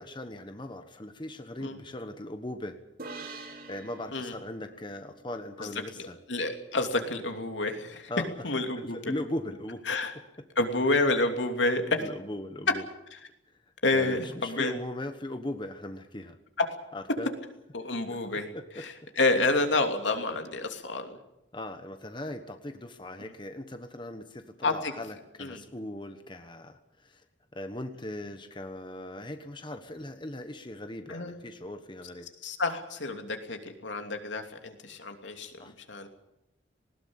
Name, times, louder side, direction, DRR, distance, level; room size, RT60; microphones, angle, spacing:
voice 1, 0.0-2.8 3.3-6.2 8.1-8.3 8.8-9.8 12.0-12.8 13.9-16.4 16.9-17.3 18.5-18.8 21.5-27.2 27.5-32.3 35.6-35.7, left 1 dB, 25° left, 7 dB, 1.3 m, -39 dB
sound 1, 3.0-6.5, right 3 dB, 50° right, 3.1 m, -46 dB
voice 2, 5.9-8.1 8.4-9.1 9.9-10.1 10.6-12.0 13.1-13.2 13.8-14.7 16.6-16.7 17.7-18.5 18.7-21.2 23.2-23.3 24.6-24.9 25.4-25.6 31.1-31.4 32.4-36.1, left 2 dB, 80° left, 5 dB, 2.8 m, -29 dB
19.5 x 18.0 x 8.8 m, 0.87 s
head